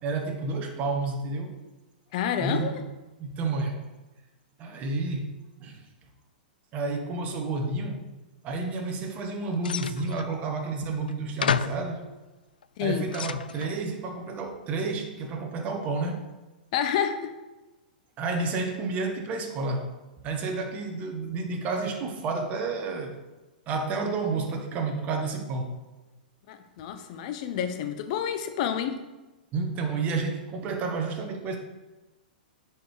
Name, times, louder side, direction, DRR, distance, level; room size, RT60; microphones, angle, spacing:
voice 1, 0.0-1.6 2.4-2.9 3.2-3.9 4.6-5.8 6.7-8.0 8.4-12.1 12.8-16.2 18.2-19.9 20.2-23.2 23.7-25.8 29.5-31.6, right 3 dB, 30° right, 3 dB, 1.4 m, -30 dB
voice 2, 2.1-2.8 12.8-13.1 16.7-17.3 26.5-29.0, left 8 dB, 50° left, 8 dB, 0.9 m, -29 dB
sound 1, 9.6-10.3 11.1-11.2 11.4-11.9 12.6-13.8, left 7 dB, 75° left, 0.3 m, -30 dB
9.5 x 4.7 x 4.9 m, 1.1 s
figure-of-eight pair, 110°, 5 cm